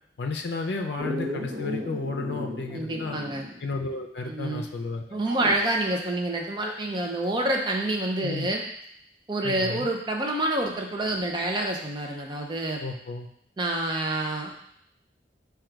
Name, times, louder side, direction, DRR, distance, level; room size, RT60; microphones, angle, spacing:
voice 1, 0.2-3.2 3.6-5.2 8.2-8.5 9.4-9.9 12.8-13.3, left 3 dB, 70° left, 3 dB, 0.5 m, -32 dB
Dog, 1.0-3.7 4.0-4.1 5.2-5.8 7.9-8.0, left 1 dB, 75° right, 0.8 m, -35 dB
voice 2, 2.7-3.5 4.3-4.6 5.1-8.6 9.3-12.8 13.6-14.6, right 1 dB, 25° right, 1 dB, 0.4 m, -27 dB
4.9 x 2.3 x 4.5 m, 0.71 s
head